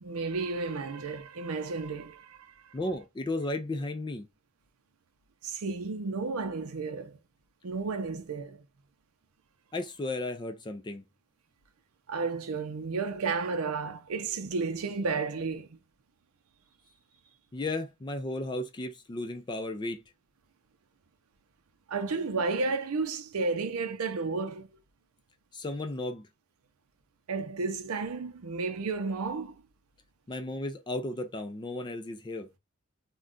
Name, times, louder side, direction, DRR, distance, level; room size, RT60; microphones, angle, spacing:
voice 1, 0.0-2.7 5.4-7.2 7.6-8.6 12.1-15.8 21.9-24.7 27.3-29.6, right 4 dB, 80° right, 0.5 m, -32 dB
voice 2, 2.7-4.3 9.7-11.0 17.5-20.0 25.5-26.3 30.3-32.5, left 2 dB, 20° left, 0.4 m, -34 dB
2.3 x 2.2 x 3.7 m
head